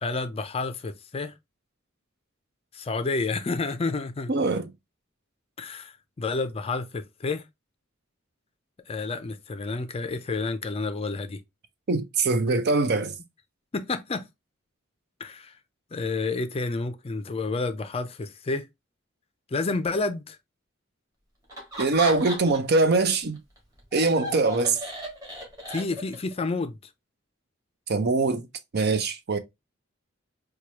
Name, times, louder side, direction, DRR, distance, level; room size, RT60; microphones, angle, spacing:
voice 1, 0.0-1.3 2.7-4.3 5.6-7.4 8.9-11.4 13.7-14.3 15.2-15.6 15.9-18.7 19.5-20.4 25.7-26.8, left 3 dB, 30° left, 0.4 m, -30 dB
voice 2, 4.3-4.7 11.9-13.1 21.8-23.4 23.9-24.8 27.9-28.4 28.7-29.4, right 3 dB, 55° right, 0.6 m, -23 dB
Laughter, 21.5-22.8 23.1-26.3, right 1 dB, 20° right, 2.0 m, -36 dB
4.6 x 2.3 x 2.8 m
head